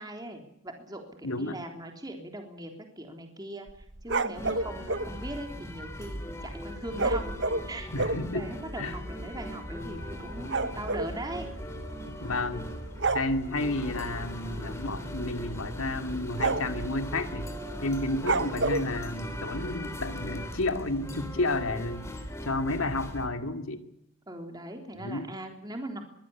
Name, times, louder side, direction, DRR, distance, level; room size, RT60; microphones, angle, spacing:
voice 1, 0.0-3.7 4.0-7.4 7.7-11.5 19.5-19.9 24.3-26.0, right 1 dB, 20° right, 3 dB, 3.6 m, -40 dB
voice 2, 1.2-1.6 7.9-8.5 8.8-9.0 12.1-12.7 13.1-17.5 17.8-22.1 22.4-23.8 24.9-25.3, left 2 dB, 80° left, 7 dB, 2.5 m, -31 dB
sound 1, 3.7-5.1 7.0-8.3 9.0-9.1 9.3-9.5 9.8-11.1 12.2-12.6 12.9-13.3 14.6-14.9 15.2-15.3 15.8-16.0 16.4-16.9 18.2-18.9, right 3 dB, 55° right, 1.2 m, -29 dB
sound 2, 4.3-23.3, equal, 15° left, 3.1 m, -39 dB
sound 3, 9.7-16.2, left 1 dB, 60° left, 3.2 m, -50 dB
23.5 x 15.5 x 8.6 m, 0.77 s
head